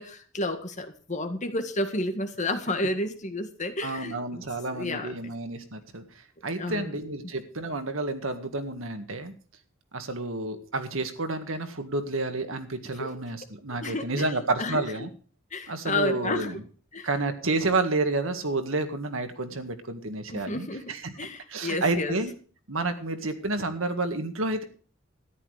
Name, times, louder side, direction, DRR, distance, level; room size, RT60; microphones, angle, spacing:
voice 1, 0.0-4.4 4.7-5.1 6.6-6.9 13.0-13.1 13.8-14.2 14.6-15.1 15.5-16.6 16.9-17.1 20.3-22.2, left 2 dB, 40° left, 7 dB, 1.8 m, -31 dB
voice 2, 3.8-6.0 6.4-9.3 9.9-15.1 15.7-16.6 17.0-21.1 21.5-22.3 22.7-24.6, right 2 dB, 85° right, 7 dB, 1.8 m, -30 dB
13.5 x 11.0 x 4.9 m, 0.42 s
head